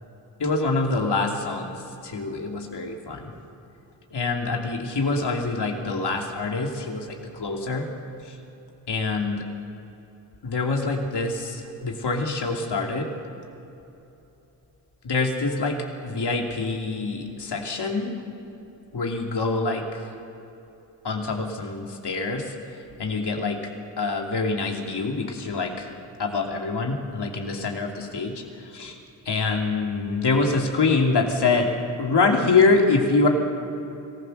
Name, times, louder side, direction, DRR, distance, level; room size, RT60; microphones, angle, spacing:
voice 1, 0.4-1.7 2.0-3.3 4.1-7.9 8.2-8.4 8.9-9.5 10.4-13.1 15.0-18.1 18.9-19.8 21.0-22.5 23.0-23.6 24.0-25.9 26.2-29.0 29.2-31.7 32.0-33.3, left 3 dB, 60° left, 2 dB, 3.0 m, -25 dB
26.5 x 15.0 x 6.6 m, 3.0 s
supercardioid pair, 45°, 45 cm